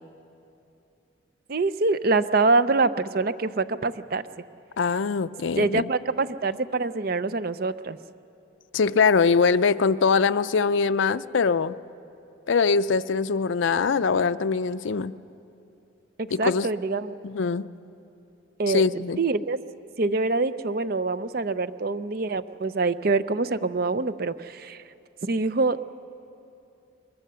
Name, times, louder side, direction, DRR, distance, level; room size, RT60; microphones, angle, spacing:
voice 1, 1.5-4.2 5.6-8.0 16.2-17.2 18.6-19.6 20.0-24.8 25.2-25.8, right 3 dB, 50° right, 13 dB, 0.5 m, -25 dB
voice 2, 4.8-5.9 8.7-11.8 12.5-15.1 16.3-16.7 17.2-17.7 18.7-19.2, left 5 dB, 70° left, 12 dB, 0.5 m, -22 dB
22.0 x 22.0 x 6.8 m, 2.7 s
head